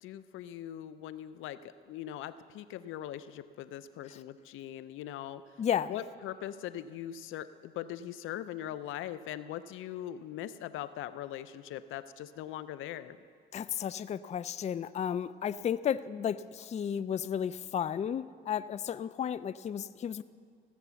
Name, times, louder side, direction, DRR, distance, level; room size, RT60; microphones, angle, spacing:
voice 1, 0.0-5.4 5.9-13.2, left 11 dB, 85° left, 14 dB, 0.5 m, -41 dB
voice 2, 5.6-5.9 13.5-20.2, left 8 dB, 35° left, 16 dB, 0.4 m, -33 dB
16.0 x 8.1 x 6.9 m, 2.1 s
cardioid pair, 90°, 20 cm